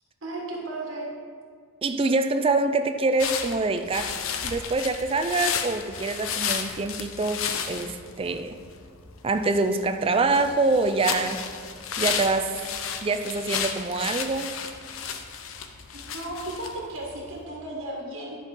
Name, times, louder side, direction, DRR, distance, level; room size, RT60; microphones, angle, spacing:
voice 1, 0.2-1.1 15.9-18.4, right 1 dB, 65° right, -2 dB, 1.4 m, -35 dB
voice 2, 1.8-4.2 4.4-8.6 9.2-11.4 12.0-12.6 13.0-14.6, right 3 dB, 25° right, 9 dB, 0.3 m, -25 dB
sound 1, 3.2-17.4, left 7 dB, 75° left, 0.6 m, -33 dB
10.5 x 5.5 x 3.7 m, 2.1 s
head